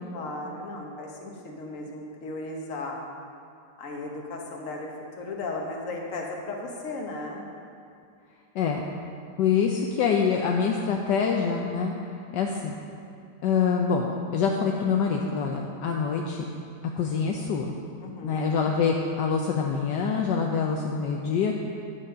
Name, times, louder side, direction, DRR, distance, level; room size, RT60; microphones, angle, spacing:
voice 1, 0.1-3.0 3.8-7.4 18.0-18.7, left 2 dB, 50° left, 0 dB, 1.4 m, -36 dB
voice 2, 9.4-11.9 12.3-12.7 13.4-16.5 17.0-17.7 18.2-21.6, left 6 dB, 75° left, 1 dB, 1.2 m, -25 dB
9.8 x 6.5 x 5.6 m, 2.4 s
omnidirectional pair, 2.0 m